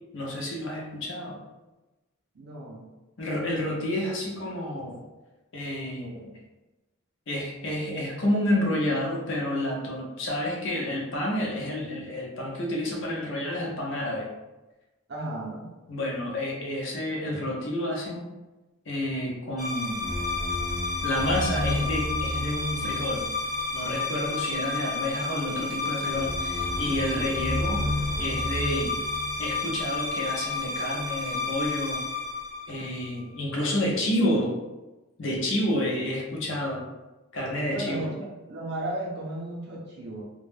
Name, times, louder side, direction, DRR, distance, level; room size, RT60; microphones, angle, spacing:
voice 1, 0.1-1.4 3.2-5.0 5.5-6.3 7.3-14.3 15.9-18.3 18.9-20.1 21.0-23.3 23.7-27.8 28.2-29.0 29.4-32.0 32.7-34.5 35.2-36.9 37.3-38.1, left 1 dB, 55° left, -2 dB, 0.6 m, -29 dB
voice 2, 2.3-2.9 15.1-15.7 37.6-40.2, right 1 dB, 50° right, -4 dB, 0.5 m, -35 dB
sound 1, 19.6-33.2, left 2 dB, ahead, 0.4 m, -30 dB
2.2 x 2.0 x 3.1 m, 1.1 s
head